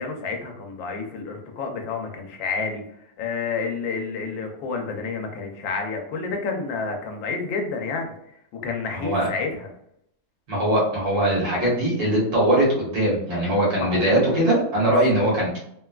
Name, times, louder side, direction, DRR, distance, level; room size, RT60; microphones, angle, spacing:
voice 1, 0.0-2.8 3.2-8.1 8.5-9.7 13.8-14.0 14.9-15.0, left 4 dB, 80° left, 3 dB, 1.3 m, -29 dB
voice 2, 8.9-9.3 10.5-15.6, right 1 dB, 55° right, -5 dB, 1.7 m, -21 dB
3.6 x 2.2 x 2.2 m, 0.74 s
omnidirectional pair, 2.0 m